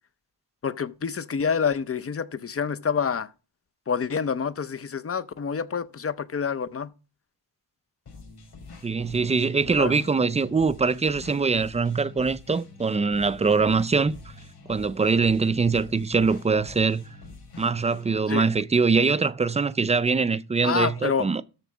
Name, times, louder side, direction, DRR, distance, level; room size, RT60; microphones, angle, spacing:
voice 1, 0.6-3.3 3.9-6.9 9.8-9.9 18.3-18.5 20.6-21.3, left 6 dB, 35° left, 0.6 m, -27 dB
sound 1, 8.1-18.2, left 3 dB, 70° left, 6.1 m, -45 dB
voice 2, 8.8-14.2 14.7-17.0 17.6-21.4, right 4 dB, 15° right, 0.4 m, -23 dB
13.5 x 4.6 x 6.1 m
wide cardioid pair, 150°, 41 cm